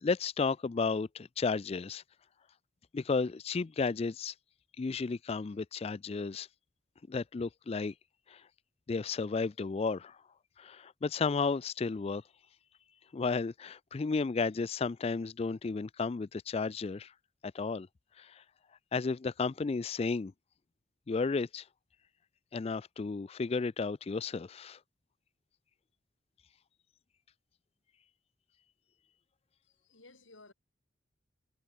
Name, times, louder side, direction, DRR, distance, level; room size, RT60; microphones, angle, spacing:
voice 1, 0.0-2.0 2.9-4.3 4.8-6.5 7.1-7.9 8.3-8.4 8.9-10.2 10.6-12.2 13.1-17.1 17.5-17.9 18.2-18.3 18.9-20.3 21.1-21.6 22.5-24.8, left 4 dB, 30° left, 0.4 m, -33 dB
voice 2, 29.6-30.5, left 2 dB, 85° left, 4.7 m, -57 dB
head